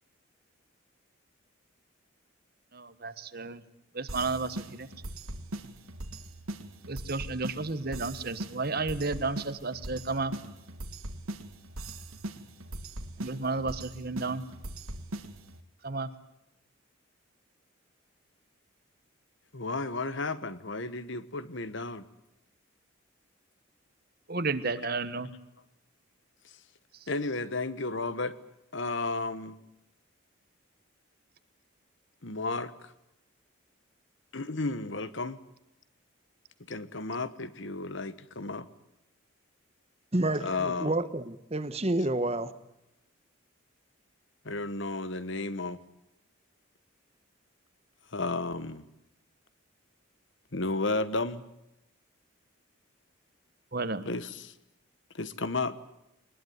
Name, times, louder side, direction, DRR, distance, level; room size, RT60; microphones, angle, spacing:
voice 1, 2.7-3.6 3.9-4.9 6.9-10.3 13.2-14.4 15.8-16.1 24.3-25.3 53.7-54.1, right 3 dB, 45° right, 13 dB, 1.3 m, -32 dB
sound 1, 4.1-15.6, right 1 dB, 90° right, 2.0 m, -41 dB
voice 2, 19.5-22.0 27.1-28.3 28.7-29.6 32.2-32.9 34.3-35.4 36.7-38.7 40.4-41.0 44.4-45.8 48.1-48.9 50.5-51.4 54.0-54.5 55.1-55.8, left 3 dB, 60° left, 14 dB, 1.2 m, -33 dB
voice 3, 40.1-42.5, right 2 dB, 30° right, 13 dB, 1.1 m, -29 dB
23.0 x 20.5 x 9.4 m, 0.87 s
head